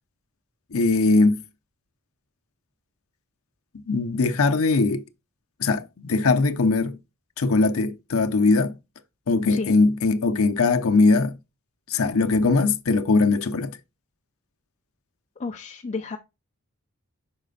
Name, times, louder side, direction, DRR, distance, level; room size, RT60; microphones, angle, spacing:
voice 1, 0.7-1.4 3.9-5.0 5.6-7.0 7.4-8.7 9.3-11.4 11.9-13.8, left 3 dB, 65° left, 0.7 m, -20 dB
voice 2, 15.4-16.2, left 4 dB, 30° left, 0.5 m, -31 dB
6.1 x 4.2 x 3.8 m
head